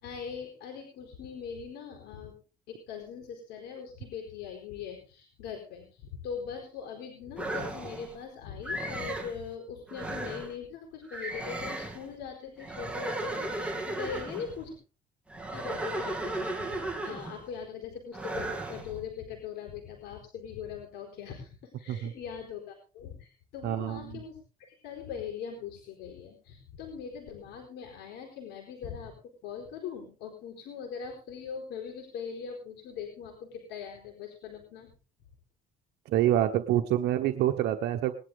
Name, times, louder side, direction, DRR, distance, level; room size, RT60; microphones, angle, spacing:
voice 1, 0.0-2.4 2.7-14.7 15.5-29.2 29.4-34.9, left 7 dB, 80° left, 1 dB, 4.5 m, -41 dB
sound 1, 7.4-8.2 8.6-9.4 9.9-10.5 11.1-12.1 12.6-14.6 15.3-17.5 18.1-18.9, right 2 dB, 5° right, 2.9 m, -35 dB
voice 2, 23.6-24.0 36.1-38.1, right 12 dB, 80° right, 6 dB, 1.2 m, -26 dB
20.5 x 11.5 x 3.7 m, 0.35 s
cardioid pair, 110°, 17 cm